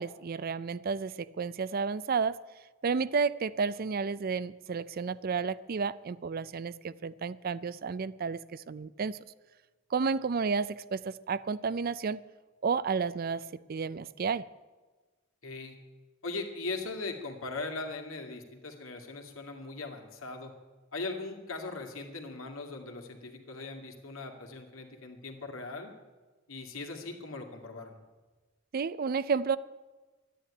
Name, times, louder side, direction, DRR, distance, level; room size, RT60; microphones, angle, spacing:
voice 1, 0.0-2.4 2.8-9.2 9.9-12.2 12.6-14.5 28.7-29.6, right 5 dB, 45° right, 17 dB, 0.4 m, -31 dB
voice 2, 15.4-15.8 16.2-20.5 20.9-25.9 26.5-27.9, left 3 dB, 85° left, 3 dB, 2.3 m, -39 dB
12.5 x 10.0 x 10.0 m, 1.3 s
head